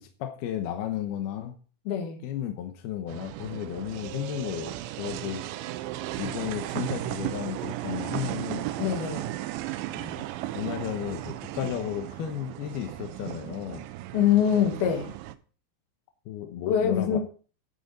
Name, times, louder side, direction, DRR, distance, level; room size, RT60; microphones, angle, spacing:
voice 1, 0.0-1.6 2.2-5.4 6.2-8.7 9.9-10.3 10.5-13.9 16.3-17.2, left 10 dB, 75° left, 6 dB, 2.3 m, -34 dB
voice 2, 1.9-2.2 8.8-9.3 14.1-15.1 16.7-17.2, left 9 dB, 60° left, 3 dB, 3.5 m, -24 dB
sound 1, 3.1-15.4, right 15 dB, 80° right, 2.8 m, -35 dB
12.0 x 9.0 x 4.2 m, 0.39 s
omnidirectional pair, 5.7 m